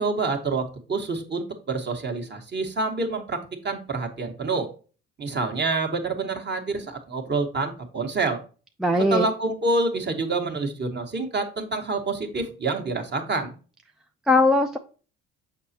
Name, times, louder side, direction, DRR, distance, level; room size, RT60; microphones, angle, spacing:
voice 1, 0.0-4.7 5.2-8.4 9.1-13.5, right 3 dB, 35° right, 5 dB, 1.4 m, -27 dB
voice 2, 8.8-9.3 14.3-14.8, left 2 dB, ahead, 4 dB, 0.5 m, -19 dB
6.6 x 5.0 x 2.8 m, 0.37 s
hypercardioid pair, 65°, 31 cm